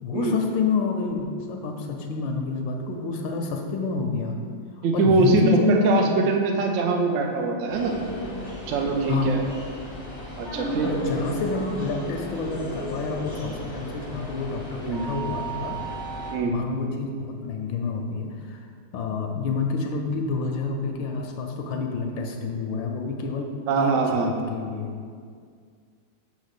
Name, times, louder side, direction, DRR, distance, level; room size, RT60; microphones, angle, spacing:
voice 1, 0.0-4.4 4.9-6.1 9.1-9.3 10.8-15.8 16.4-18.7 18.9-23.5 23.8-24.9, left 4 dB, 75° left, 3 dB, 1.3 m, -28 dB
voice 2, 4.8-8.0 8.7-9.4 10.4-10.9 14.8-15.0 16.3-16.5 23.7-24.3, right 3 dB, 70° right, 2 dB, 0.7 m, -23 dB
sound 1, 7.7-16.4, right 1 dB, 25° left, 0.6 m, -34 dB
7.2 x 2.9 x 5.9 m, 2.1 s
omnidirectional pair, 2.2 m